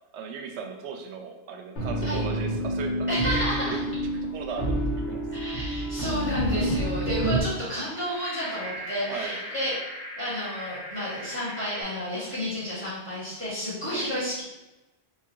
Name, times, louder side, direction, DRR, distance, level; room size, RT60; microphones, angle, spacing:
voice 1, 0.1-4.0 4.3-4.8 5.1-5.2 9.1-9.4 13.9-14.1, right 5 dB, 85° right, 4 dB, 0.9 m, -37 dB
sound 1, 1.8-7.4, right 1 dB, 85° left, 1.4 m, -28 dB
voice 2, 3.1-3.8 5.3-9.7 10.2-14.4, equal, 10° left, -10 dB, 1.5 m, -31 dB
sound 2, 7.8-11.8, equal, 70° left, 1.2 m, -39 dB
3.7 x 2.7 x 2.9 m, 1.0 s
omnidirectional pair, 1.1 m